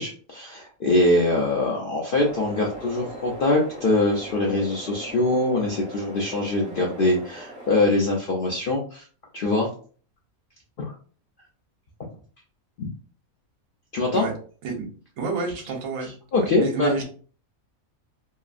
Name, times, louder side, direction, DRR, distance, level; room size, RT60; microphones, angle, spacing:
voice 1, 0.0-9.0 9.3-9.7 10.8-10.9 12.8-12.9 13.9-14.2 16.3-16.9, left 2 dB, 70° left, -1 dB, 0.5 m, -23 dB
sound 1, 2.1-7.9, equal, 5° right, 1.1 m, -40 dB
voice 2, 15.2-16.1 16.4-17.0, right 3 dB, 70° right, 2 dB, 1.1 m, -28 dB
2.9 x 2.4 x 2.4 m, 0.42 s
omnidirectional pair, 1.5 m